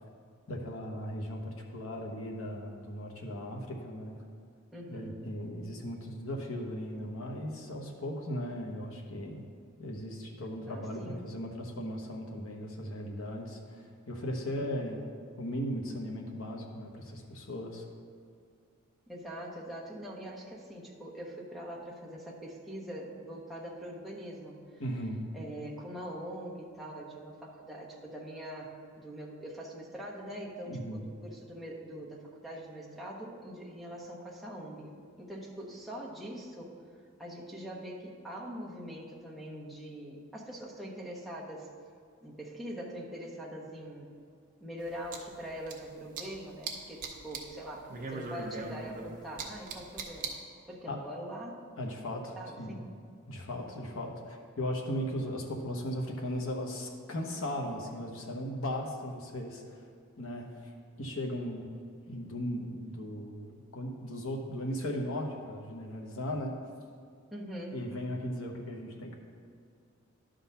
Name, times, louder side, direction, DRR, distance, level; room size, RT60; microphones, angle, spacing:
voice 1, 0.5-4.2 4.9-9.4 9.8-15.0 15.4-17.8 24.8-25.2 30.6-31.0 50.9-51.0 51.8-52.8 53.3-59.9 60.2-60.5 61.0-61.7 62.1-66.5 67.7-69.2, equal, 80° left, 1 dB, 1.1 m, -37 dB
voice 2, 4.7-5.2 10.7-11.3 14.5-14.8 19.1-24.6 25.3-36.7 37.2-41.7 42.2-44.1 44.6-50.3 50.7-51.6 52.4-52.9 67.3-67.8, equal, ahead, -5 dB, 1.0 m, -43 dB
sound 1, 44.8-45.8 46.2-46.8 47.0-47.5 47.8-50.3, right 4 dB, 40° right, 0.8 m, -39 dB
11.5 x 3.9 x 5.6 m, 2.2 s
head